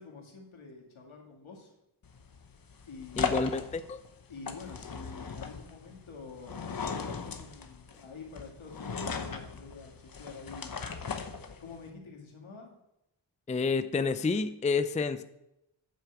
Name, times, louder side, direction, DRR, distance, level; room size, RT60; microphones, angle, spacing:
voice 1, 0.0-1.8 2.9-3.5 4.3-10.8 11.6-12.8, left 4 dB, 80° left, 0 dB, 2.2 m, -47 dB
sound 1, 2.0-11.9, left 5 dB, 45° left, 1.0 m, -38 dB
voice 2, 3.2-4.0 13.5-15.2, left 4 dB, 15° left, 12 dB, 0.4 m, -29 dB
9.2 x 4.7 x 7.0 m, 0.85 s
cardioid pair, 60°, 48 cm